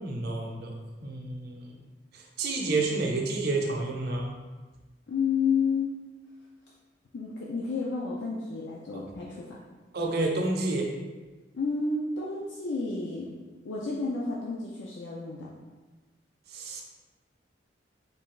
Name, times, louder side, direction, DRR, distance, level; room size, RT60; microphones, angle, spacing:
voice 1, 0.0-1.8 2.1-4.3 9.9-10.9 16.5-16.8, right 2 dB, 60° right, 0 dB, 0.6 m, -30 dB
voice 2, 5.1-5.9 7.1-9.6 11.5-13.3 13.6-15.5, left 4 dB, 85° left, -4 dB, 0.5 m, -30 dB
3.9 x 2.3 x 3.7 m, 1.3 s
head